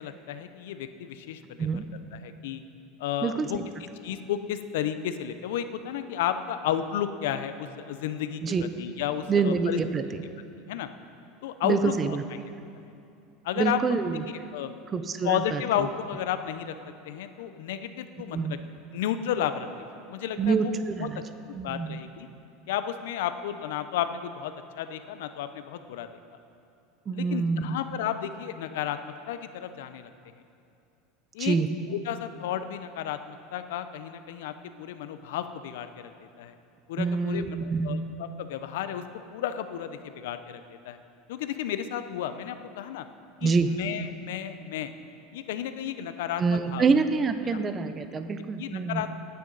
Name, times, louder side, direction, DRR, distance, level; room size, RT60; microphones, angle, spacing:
voice 1, 0.0-1.7 2.1-2.6 3.0-9.8 10.7-10.9 11.4-12.4 13.4-14.0 14.3-14.8 15.2-16.7 17.0-18.6 18.9-20.7 21.0-22.3 22.7-26.1 27.1-30.1 31.3-31.6 31.9-36.5 36.9-39.0 39.3-41.0 41.3-43.1 43.4-44.9 45.3-46.8 47.5-47.6 48.6-49.1, left 10 dB, 80° left, 10 dB, 0.7 m, -33 dB
voice 2, 1.6-1.9 3.2-3.6 8.4-8.6 9.3-10.2 11.6-12.2 13.6-14.2 14.9-15.6 18.3-18.5 20.4-21.2 21.5-22.0 27.1-27.7 31.4-31.7 37.0-38.1 43.4-43.8 46.4-49.1, right 5 dB, 20° right, 10 dB, 0.5 m, -26 dB
17.0 x 9.4 x 4.0 m, 2.6 s
supercardioid pair, 170°, 0 cm